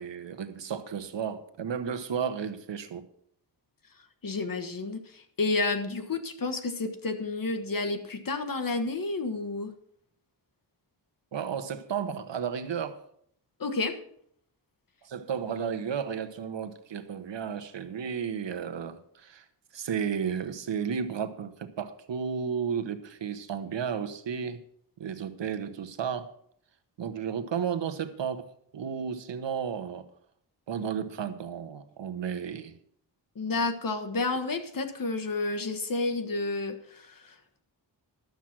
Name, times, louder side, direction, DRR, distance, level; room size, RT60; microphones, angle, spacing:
voice 1, 0.0-3.0 11.3-13.0 15.0-19.4 19.7-24.6 25.0-26.3 27.0-28.5 28.7-30.0 30.7-32.8, right 7 dB, 80° right, 9 dB, 1.1 m, -33 dB
voice 2, 4.2-9.7 13.6-14.0 33.3-37.6, left 3 dB, 50° left, 6 dB, 1.4 m, -31 dB
12.0 x 7.5 x 6.0 m, 0.66 s
wide cardioid pair, 95°, 43 cm